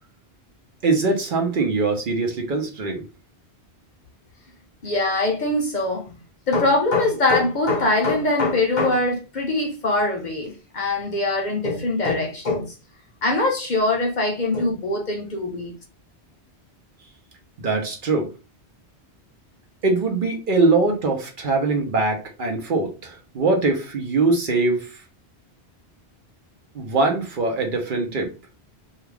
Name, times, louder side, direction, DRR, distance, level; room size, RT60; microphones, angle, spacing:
voice 1, 0.8-3.0 17.6-18.3 19.8-25.0 26.7-28.3, right 3 dB, 55° right, 0.7 m, -22 dB
voice 2, 4.8-6.0 6.5-12.7 13.2-15.7, left 2 dB, 50° left, 0.7 m, -22 dB
2.3 x 2.3 x 3.2 m
omnidirectional pair, 1.1 m